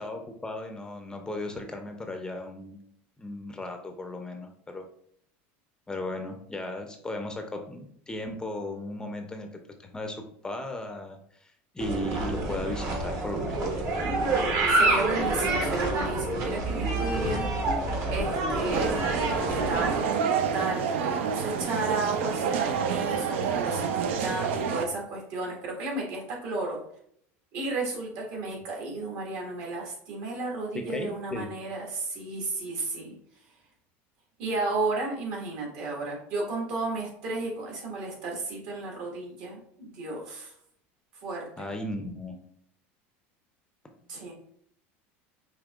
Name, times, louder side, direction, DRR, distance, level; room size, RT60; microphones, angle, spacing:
voice 1, 0.0-2.8 3.2-4.9 5.9-9.5 9.8-13.9 30.7-31.5 41.6-42.4, left 1 dB, 10° left, 4 dB, 0.5 m, -36 dB
sound 1, 11.8-20.0, right 2 dB, 50° right, 0.9 m, -27 dB
voice 2, 14.7-17.5 17.9-19.1 19.5-26.8 27.5-33.2 34.4-40.5 41.2-41.7 44.1-44.3, right 3 dB, 65° right, -1 dB, 1.6 m, -33 dB
sound 2, 18.7-24.9, right 6 dB, 85° right, 0.4 m, -28 dB
5.2 x 2.8 x 2.3 m, 0.67 s
supercardioid pair, 120°, 7 cm